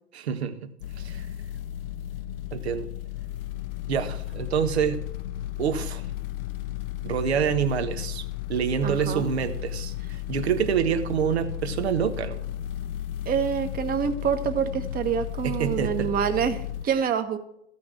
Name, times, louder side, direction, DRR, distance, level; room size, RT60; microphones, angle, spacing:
voice 1, 0.1-0.7 1.0-1.3 2.5-2.9 3.9-5.0 5.6-6.0 7.0-8.2 8.5-12.4 15.4-16.1 16.9-17.0, right 8 dB, 65° right, 8 dB, 1.5 m, -27 dB
sound 1, 0.8-16.9, left 12 dB, 55° left, 0.8 m, -34 dB
voice 2, 8.8-9.2 13.2-17.4, right 8 dB, 25° right, 8 dB, 1.3 m, -26 dB
14.5 x 6.3 x 7.6 m, 0.75 s
figure-of-eight pair, 100°, 34 cm